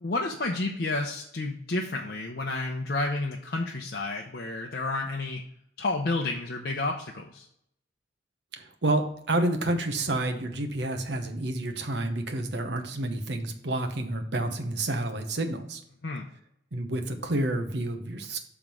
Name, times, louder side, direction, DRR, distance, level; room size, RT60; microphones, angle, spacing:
voice 1, 0.0-5.4 5.8-7.4 16.0-16.2, left 2 dB, 55° left, 0 dB, 0.7 m, -30 dB
voice 2, 8.6-15.8 16.7-18.4, right 1 dB, 60° right, 6 dB, 0.9 m, -29 dB
7.1 x 3.7 x 6.0 m, 0.71 s
head